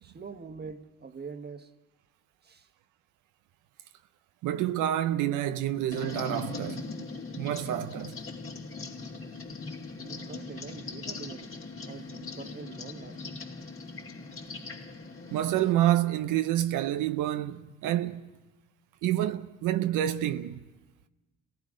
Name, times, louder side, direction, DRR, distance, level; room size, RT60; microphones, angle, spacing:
voice 1, 0.0-1.7 2.4-2.7 10.0-11.5 11.9-13.4, right 5 dB, 35° right, 1.4 m, -44 dB
voice 2, 4.4-6.8 7.4-8.2 15.3-18.3 19.0-20.6, right 12 dB, 90° right, 0.6 m, -28 dB
sound 1, 5.9-15.7, left 4 dB, 45° left, 3.0 m, -40 dB
29.5 x 18.0 x 5.2 m
cardioid pair, 90°, 30 cm